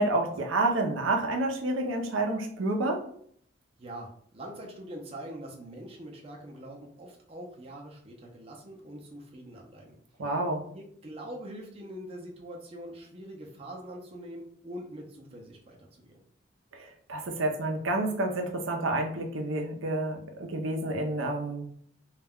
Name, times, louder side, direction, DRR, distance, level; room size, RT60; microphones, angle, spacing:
voice 1, 0.0-3.0 10.2-10.7 16.7-21.7, right 2 dB, 80° right, 3 dB, 0.5 m, -29 dB
voice 2, 3.8-10.0 10.7-16.2, right 1 dB, 30° right, -1 dB, 0.5 m, -43 dB
2.3 x 2.1 x 3.5 m, 0.62 s
head